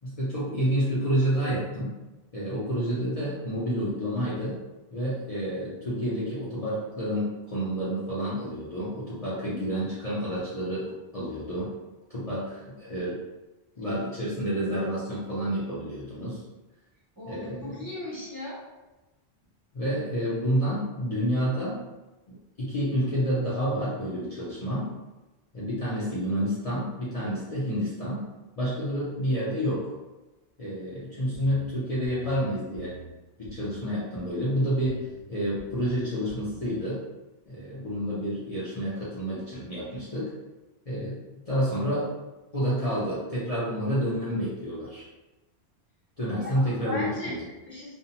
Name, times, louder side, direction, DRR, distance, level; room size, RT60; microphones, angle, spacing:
voice 1, 0.0-1.9 2.3-4.6 4.9-11.7 12.1-13.2 13.8-16.4 17.3-17.7 19.7-21.8 22.3-24.9 25.5-28.3 28.6-29.9 30.6-33.0 33.4-37.0 37.5-40.3 40.9-41.2 41.5-42.1 42.5-45.1 46.2-47.4, equal, 40° left, -9 dB, 0.6 m, -29 dB
voice 2, 17.2-18.6 46.3-47.9, left 1 dB, 20° right, -9 dB, 0.7 m, -37 dB
sound 1, 31.3-31.7 32.0-32.4 32.7-33.1 33.4-33.8 34.1-34.5 34.9-35.2 35.6-35.9 36.3-36.6, right 3 dB, 85° left, 1.0 m, -46 dB
2.6 x 2.1 x 2.7 m, 1.1 s
omnidirectional pair, 1.1 m